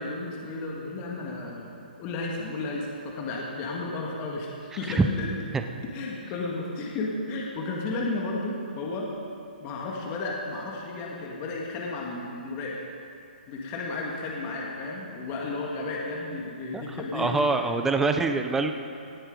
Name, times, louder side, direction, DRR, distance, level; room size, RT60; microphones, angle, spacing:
voice 1, 0.0-5.3 5.9-9.1 9.6-12.8 13.5-17.3, left 2 dB, 30° left, -2 dB, 1.6 m, -33 dB
voice 2, 17.1-18.7, right 3 dB, 5° right, 6 dB, 0.5 m, -24 dB
17.5 x 7.7 x 5.1 m, 2.5 s
hypercardioid pair, 150°, 5 cm